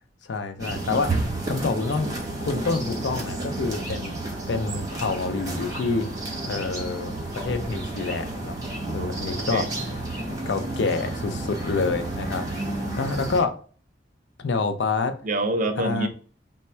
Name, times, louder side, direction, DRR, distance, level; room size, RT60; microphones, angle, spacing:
voice 1, 0.2-2.2 2.4-4.1 4.5-6.1 6.4-8.6 8.9-9.7 10.5-12.4 13.0-13.5 14.4-15.1 15.8-16.1, left 4 dB, 70° left, 8 dB, 0.5 m, -27 dB
sound 1, 0.6-13.4, right 2 dB, 20° right, 1.0 m, -31 dB
voice 2, 12.5-13.0 15.2-16.1, right 2 dB, 45° right, 6 dB, 0.6 m, -27 dB
3.3 x 2.2 x 4.3 m, 0.41 s
head